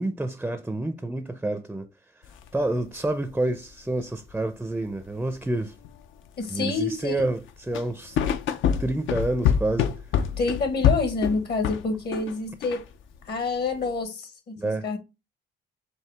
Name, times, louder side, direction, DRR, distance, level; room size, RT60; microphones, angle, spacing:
voice 1, 0.0-1.9 2.5-5.8 6.5-8.2 8.8-9.9 14.6-14.9, right 2 dB, 5° right, 0.4 m, -28 dB
sound 1, 2.2-2.5 2.7-2.8 3.3-3.6 4.2-4.3 5.1-6.8 7.2-12.3 12.6-13.2 13.7-13.9, left 8 dB, 75° left, 0.5 m, -26 dB
voice 2, 6.4-7.3 10.4-12.9 13.3-15.0, left 4 dB, 55° left, 1.0 m, -28 dB
4.7 x 2.7 x 3.3 m
cardioid pair, 90°, 20 cm